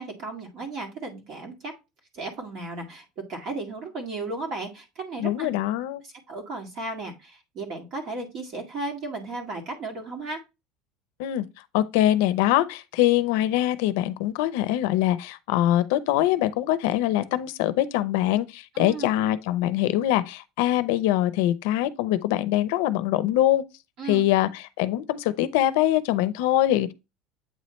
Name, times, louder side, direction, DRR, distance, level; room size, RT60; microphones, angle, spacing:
voice 1, 0.0-1.7 2.1-5.5 6.3-10.4 18.7-19.1 24.0-24.3, right 3 dB, 40° right, 1.9 m, -35 dB
voice 2, 5.2-6.0 11.2-11.5 11.7-23.6 24.0-26.9, left 13 dB, 75° left, 0.6 m, -23 dB
8.2 x 3.2 x 4.2 m
cardioid pair, 170°, 0 cm